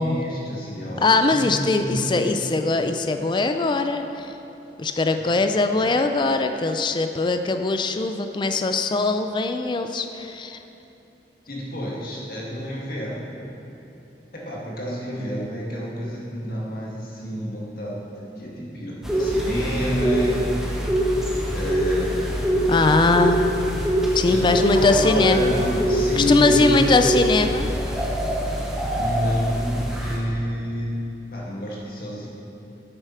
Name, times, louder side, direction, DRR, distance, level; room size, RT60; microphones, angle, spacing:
voice 1, 0.0-2.2 5.2-5.3 11.5-13.4 14.3-20.5 21.5-23.1 24.2-27.2 29.0-31.0 31.3-32.3, equal, 55° left, -4 dB, 1.9 m, -29 dB
voice 2, 1.0-4.3 4.8-10.6 22.7-23.4 24.1-25.5 26.2-27.7, left 3 dB, 25° left, 7 dB, 0.4 m, -21 dB
sound 1, 19.0-30.2, equal, 5° right, 1.0 m, -24 dB
8.3 x 6.8 x 5.6 m, 2.9 s
head